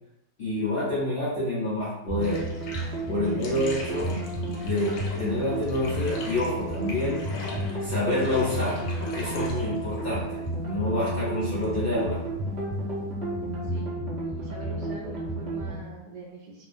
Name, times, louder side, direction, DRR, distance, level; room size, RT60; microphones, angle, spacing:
voice 1, 0.4-2.5 3.1-4.2 4.6-7.3 7.8-12.3, left 1 dB, 50° left, -11 dB, 0.7 m, -28 dB
sound 1, 2.1-15.8, right 1 dB, 50° right, 0.8 m, -32 dB
Bathtub (filling or washing), 2.2-13.8, left 3 dB, 70° left, 1.0 m, -42 dB
voice 2, 13.6-14.0 14.2-16.7, right 2 dB, 75° right, -2 dB, 1.1 m, -43 dB
2.8 x 2.5 x 2.5 m, 0.87 s
omnidirectional pair, 2.0 m